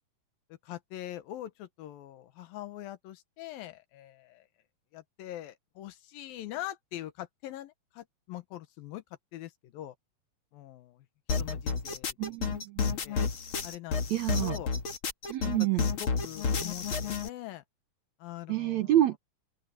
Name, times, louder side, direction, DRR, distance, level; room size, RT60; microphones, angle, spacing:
voice 1, 0.6-4.5 4.9-9.0 9.3-9.9 10.5-11.1 11.4-12.4 12.8-13.2 13.6-14.1 14.4-14.7 15.4-15.5 16.0-17.6 18.2-19.0, left 13 dB, 85° left, 3.0 m, -43 dB
sound 1, 11.3-17.3, left 5 dB, 45° left, 2.1 m, -31 dB
voice 2, 12.2-13.0 14.1-14.6 15.3-15.9 18.5-19.2, right 13 dB, 70° right, 1.8 m, -28 dB
open air
omnidirectional pair, 4.1 m